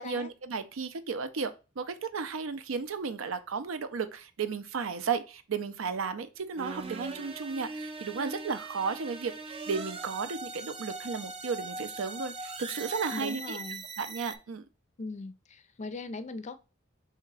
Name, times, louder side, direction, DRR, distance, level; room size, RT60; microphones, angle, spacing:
voice 1, 0.0-13.6 14.0-14.6, right 5 dB, 80° right, 0.5 m, -34 dB
sound 1, 6.6-14.4, right 3 dB, 30° right, 0.5 m, -40 dB
voice 2, 13.1-13.8 15.0-16.5, left 3 dB, 35° left, 0.4 m, -39 dB
3.4 x 2.8 x 4.7 m
head